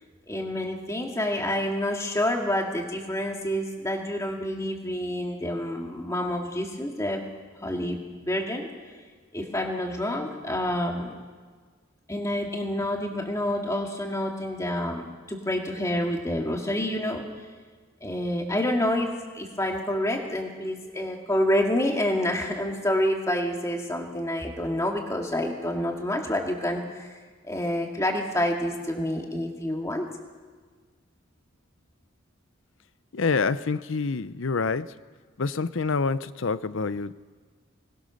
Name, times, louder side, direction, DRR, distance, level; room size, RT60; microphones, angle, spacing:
voice 1, 0.3-7.3 7.6-8.7 9.3-11.2 12.1-17.3 18.0-27.2 27.5-30.1, left 1 dB, 15° left, 2 dB, 2.2 m, -28 dB
voice 2, 33.1-34.9 35.4-37.1, left 4 dB, 65° left, 16 dB, 0.6 m, -27 dB
21.5 x 20.0 x 6.5 m, 1.5 s
head